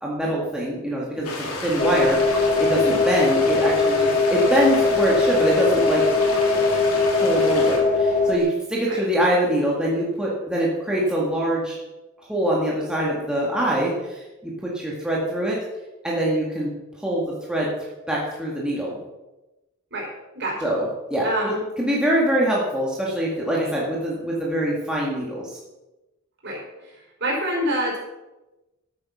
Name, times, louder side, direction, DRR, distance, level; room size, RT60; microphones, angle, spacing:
voice 1, 0.0-6.0 7.2-11.8 12.3-15.6 16.0-16.7 17.0-17.7 18.1-19.0 20.6-25.5, right 1 dB, 5° right, -5 dB, 2.1 m, -24 dB
sound 1, 1.2-7.8, left 3 dB, 75° left, 2.9 m, -32 dB
sound 2, 1.8-8.4, left 3 dB, 35° left, 1.1 m, -20 dB
voice 2, 19.9-20.7 21.2-21.6 26.4-28.0, right 1 dB, 50° right, -2 dB, 4.7 m, -27 dB
12.5 x 8.6 x 5.8 m, 1.0 s
head